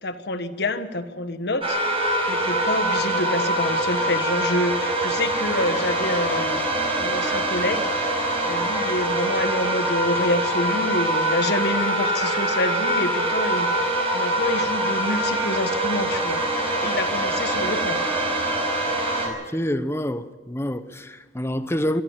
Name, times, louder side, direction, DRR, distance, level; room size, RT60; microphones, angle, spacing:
voice 1, 0.0-1.8 2.3-6.6 7.0-7.9 8.4-16.4 16.8-18.1, left 1 dB, 65° left, 1.4 m, -27 dB
sound 1, 1.6-19.3, right 1 dB, 35° right, 5.3 m, -24 dB
voice 2, 19.2-22.0, equal, 15° left, 0.9 m, -27 dB
22.5 x 13.0 x 9.0 m
head